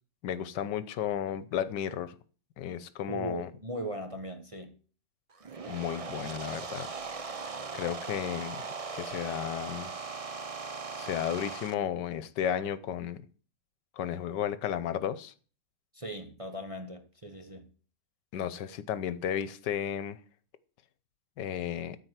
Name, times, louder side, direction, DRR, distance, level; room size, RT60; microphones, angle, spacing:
voice 1, 0.2-2.1 2.6-3.5 5.6-6.9 7.7-8.6 8.9-9.9 11.0-13.2 14.0-15.3 18.3-20.2 21.4-22.0, left 9 dB, 85° left, 1.4 m, -33 dB
voice 2, 3.1-4.7 15.9-17.7, right 1 dB, 25° right, 0.8 m, -39 dB
sound 1, 5.3-11.7, right 4 dB, 45° right, 0.4 m, -39 dB
13.5 x 4.7 x 8.0 m
omnidirectional pair, 1.8 m